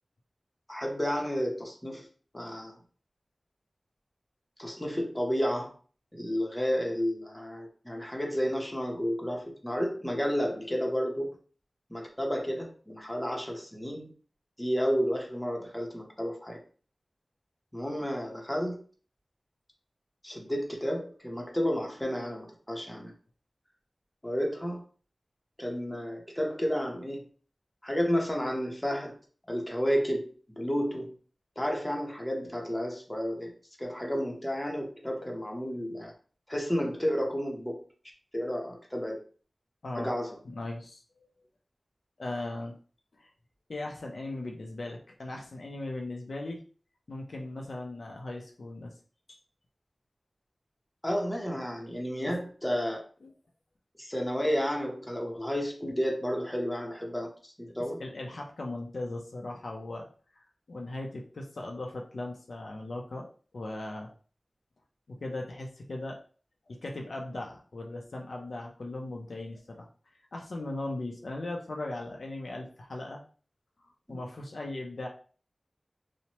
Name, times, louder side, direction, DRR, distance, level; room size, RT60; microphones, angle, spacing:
voice 1, 0.7-2.1 2.3-2.8 4.6-5.7 6.1-11.3 11.9-14.1 14.6-16.6 17.7-18.7 20.2-23.1 24.2-24.8 25.6-27.3 27.8-29.1 29.5-31.1 31.6-33.5 33.8-36.1 36.5-37.8 38.3-39.2 40.0-40.4 51.0-53.0 54.0-58.0 74.1-74.2, equal, 15° left, 0 dB, 0.7 m, -31 dB
voice 2, 40.4-41.3 42.2-42.7 43.2-43.3 43.7-46.6 47.1-48.9 49.3-49.4 53.2-53.3 58.0-60.1 60.3-63.3 63.5-64.1 65.1-66.2 66.7-69.9 70.3-73.2 74.1-75.1, left 2 dB, 80° left, 1 dB, 0.5 m, -38 dB
3.0 x 2.1 x 2.8 m, 0.41 s
wide cardioid pair, 75°, 0 cm